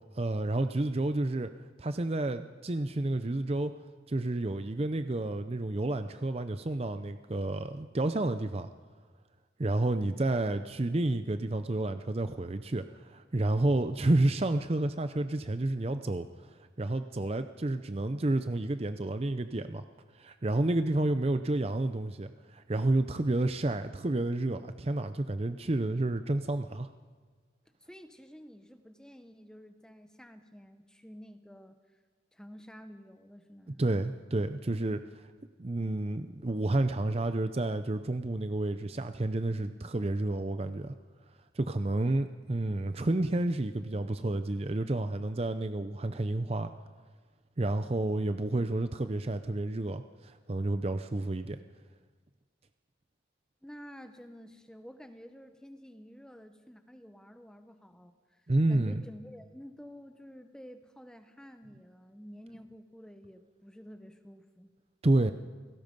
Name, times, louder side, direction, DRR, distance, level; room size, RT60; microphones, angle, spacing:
voice 1, 0.1-1.5 1.8-3.7 4.1-8.7 9.6-16.5 16.8-19.8 20.1-26.9 33.8-35.3 35.6-40.9 41.5-46.7 47.6-51.6 58.5-59.0 65.0-65.3, right 2 dB, 30° right, 9 dB, 0.6 m, -30 dB
voice 2, 27.8-31.8 32.3-33.9 53.6-64.7, equal, 5° left, 8 dB, 1.0 m, -50 dB
29.0 x 17.5 x 5.3 m, 1.5 s
head